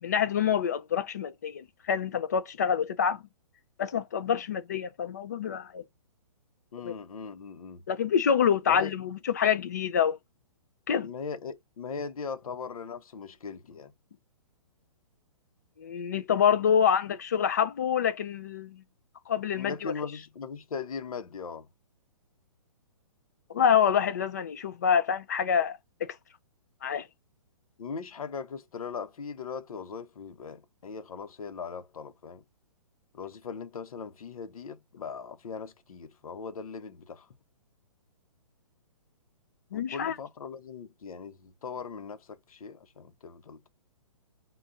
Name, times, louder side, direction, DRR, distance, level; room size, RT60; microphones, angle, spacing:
voice 1, 0.0-3.2 3.8-5.8 6.8-6.9 7.9-10.2 10.9-11.1 15.8-18.8 19.3-19.9 23.5-26.2 26.8-27.1 39.7-40.2, left 8 dB, 30° left, 0.4 m, -26 dB
voice 2, 6.7-7.8 8.7-8.9 11.0-13.9 19.5-21.7 27.8-32.4 33.1-37.3 39.7-43.7, left 5 dB, 75° left, 0.9 m, -39 dB
4.1 x 2.3 x 3.7 m
hypercardioid pair, 170°, 18 cm